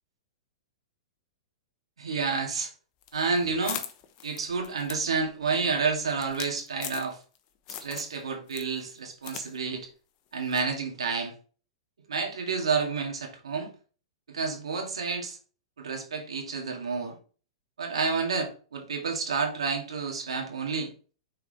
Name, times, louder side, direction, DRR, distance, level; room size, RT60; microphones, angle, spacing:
voice 1, 2.0-2.7 3.1-3.8 4.2-7.2 7.8-9.9 10.3-11.3 12.1-13.7 14.3-15.4 15.8-17.1 17.8-20.9, right 5 dB, 90° right, 2.1 m, -29 dB
sound 1, 3.0-7.4 7.7-8.2 8.5-9.5 9.7-9.8 10.5-10.7, left 10 dB, 40° left, 0.9 m, -40 dB
6.4 x 4.6 x 3.3 m
hypercardioid pair, 125°, 3 cm